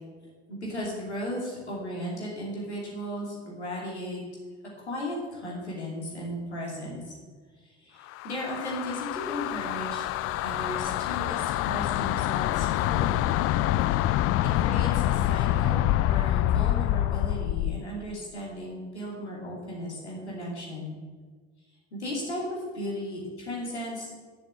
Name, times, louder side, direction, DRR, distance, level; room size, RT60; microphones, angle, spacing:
voice 1, 0.5-4.2 4.9-7.1 7.6-10.1 10.3-13.3 14.4-21.0 21.9-24.1, equal, 85° left, -4 dB, 2.8 m, -36 dB
sound 1, 8.1-17.8, left 14 dB, 45° left, 0.5 m, -26 dB
9.9 x 7.3 x 8.6 m, 1.5 s
figure-of-eight pair, 55°, 33 cm